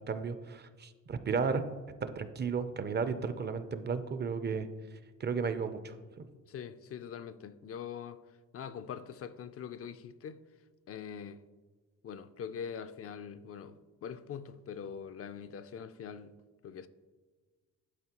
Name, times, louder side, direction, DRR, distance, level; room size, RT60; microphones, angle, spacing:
voice 1, 0.1-1.6 2.0-4.7 5.2-5.9, right 5 dB, 35° right, 0.5 m, -33 dB
voice 2, 6.5-8.2 8.5-10.4 10.9-11.4 12.0-16.3 16.6-16.9, left 7 dB, 45° left, 0.4 m, -43 dB
11.5 x 4.3 x 2.9 m
cardioid pair, 95°, 32 cm